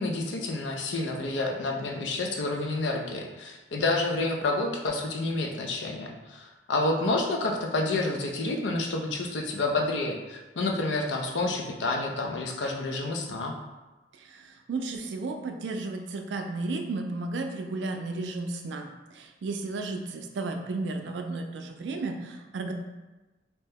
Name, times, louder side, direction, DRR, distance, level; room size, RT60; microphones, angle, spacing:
voice 1, 0.0-13.5, left 2 dB, 80° left, 2 dB, 0.4 m, -29 dB
voice 2, 14.1-22.7, right 3 dB, 75° right, 4 dB, 0.4 m, -33 dB
2.8 x 2.1 x 3.3 m, 1.1 s
head